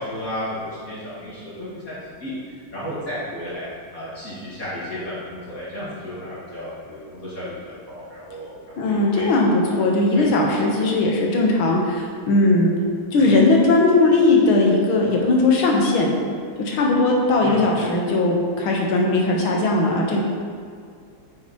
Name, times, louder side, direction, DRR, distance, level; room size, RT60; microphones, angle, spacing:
voice 1, 0.0-8.5 8.8-9.3 9.6-9.8 10.1-10.5 13.2-13.3 17.4-17.6, equal, 45° left, -9 dB, 2.3 m, -33 dB
voice 2, 8.8-12.7 13.1-16.1 16.6-20.2, left 2 dB, 80° left, -1 dB, 2.0 m, -18 dB
9.0 x 6.4 x 3.0 m, 2.2 s
omnidirectional pair, 2.3 m